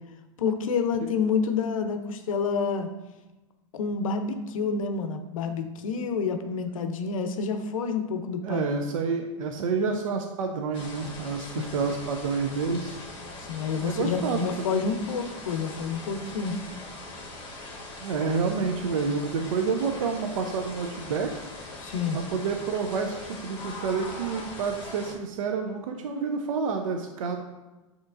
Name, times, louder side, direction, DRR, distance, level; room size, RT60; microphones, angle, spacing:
voice 1, 0.4-2.9 3.7-8.7 11.6-11.7 13.4-16.5 21.8-22.2, left 5 dB, 85° left, 8 dB, 0.5 m, -28 dB
voice 2, 8.4-13.0 13.8-14.8 18.0-21.4 22.1-27.4, right 5 dB, 85° right, 4 dB, 0.5 m, -29 dB
sound 1, 10.7-25.1, left 2 dB, 30° left, 1.2 m, -41 dB
6.6 x 2.9 x 2.4 m, 1.1 s
hypercardioid pair, 120°, 17 cm